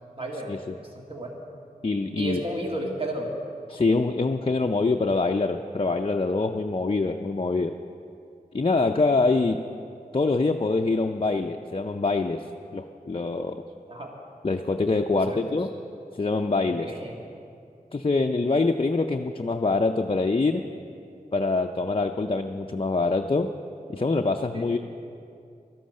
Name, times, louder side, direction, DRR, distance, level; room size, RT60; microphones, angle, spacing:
voice 1, 0.2-0.6 0.9-1.4 2.2-3.3 13.9-14.1 15.1-15.4 16.8-17.1 24.5-24.7, right 1 dB, 40° right, 0 dB, 1.9 m, -33 dB
voice 2, 1.8-2.4 3.7-7.8 8.5-9.6 10.1-12.4 12.7-13.6 14.4-15.7 16.2-16.9 17.9-20.6 21.3-23.5 23.9-24.8, left 3 dB, 40° left, 4 dB, 0.5 m, -24 dB
13.0 x 11.5 x 6.4 m, 2.5 s
wide cardioid pair, 50°, 15 cm